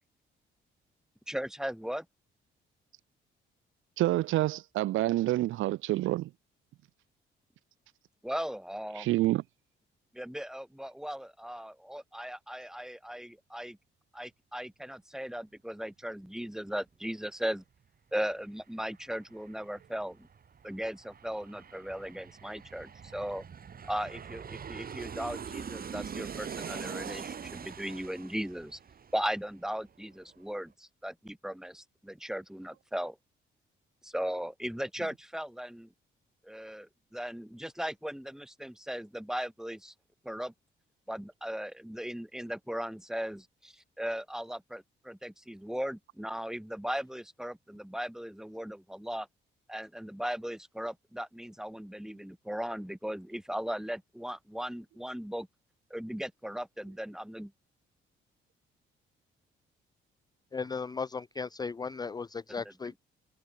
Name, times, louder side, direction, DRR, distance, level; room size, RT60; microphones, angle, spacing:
voice 1, 1.3-2.0 8.2-9.1 10.1-13.8 14.1-17.6 18.1-20.3 20.6-23.4 23.9-28.8 29.1-33.2 34.0-35.9 36.4-39.9 40.2-40.5 41.1-49.3 49.7-55.5 55.9-57.5 62.6-62.7, equal, 5° right, 6.4 m, -37 dB
voice 2, 4.0-6.3 9.0-9.4, right 15 dB, 85° right, 1.3 m, -27 dB
Aircraft, 18.2-18.3 18.6-29.9 30.2-30.3, right 7 dB, 50° right, 6.9 m, -43 dB
voice 3, 60.5-62.9, left 5 dB, 20° left, 0.5 m, -36 dB
cardioid pair, 90°, 20 cm